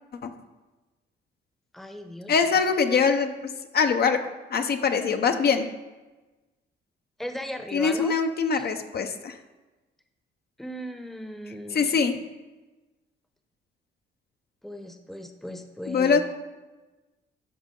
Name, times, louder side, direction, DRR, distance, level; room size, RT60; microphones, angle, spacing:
voice 1, 1.7-2.3 7.2-8.1 8.5-8.7 10.6-12.0 14.6-16.2, equal, ahead, 6 dB, 0.8 m, -37 dB
voice 2, 2.3-5.7 7.7-9.4 11.7-12.2 15.9-16.2, left 5 dB, 50° left, 7 dB, 0.8 m, -23 dB
13.0 x 5.1 x 3.8 m, 1.2 s
cardioid pair, 90°, 20 cm